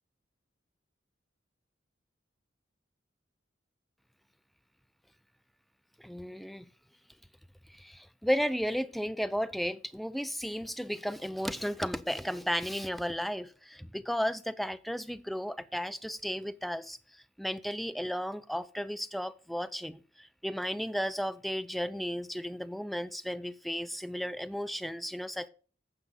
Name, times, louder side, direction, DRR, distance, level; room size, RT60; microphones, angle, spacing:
voice 1, 6.0-6.7 7.7-25.5, equal, ahead, 0.3 m, -34 dB
9.6 x 6.7 x 3.8 m
head